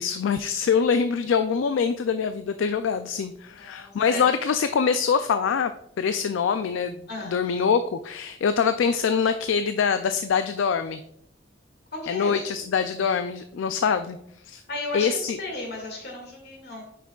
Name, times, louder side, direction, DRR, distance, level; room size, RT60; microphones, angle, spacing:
voice 1, 0.0-5.7 6.0-11.0 12.1-14.2 14.4-14.6 14.9-15.4, left 6 dB, 85° left, 10 dB, 0.4 m, -24 dB
voice 2, 3.5-4.2 7.1-7.3 11.9-12.4 14.7-16.8, left 2 dB, 60° left, 0 dB, 2.1 m, -35 dB
8.2 x 5.9 x 2.4 m, 0.74 s
head